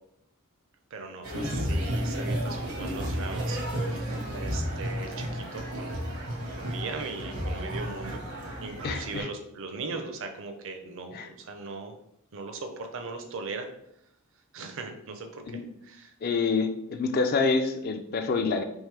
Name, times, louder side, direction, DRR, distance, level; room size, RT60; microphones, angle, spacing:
voice 1, 0.9-6.0 6.5-8.2 8.6-11.9 12.3-13.7 14.5-16.1, right 3 dB, 60° right, 5 dB, 0.6 m, -39 dB
sound 1, 1.2-9.2, equal, 85° right, 1.2 m, -32 dB
voice 2, 8.8-9.3 11.1-11.3 15.5-15.7 16.2-18.6, left 4 dB, 45° left, 7 dB, 0.3 m, -27 dB
3.6 x 2.9 x 3.2 m, 0.77 s
head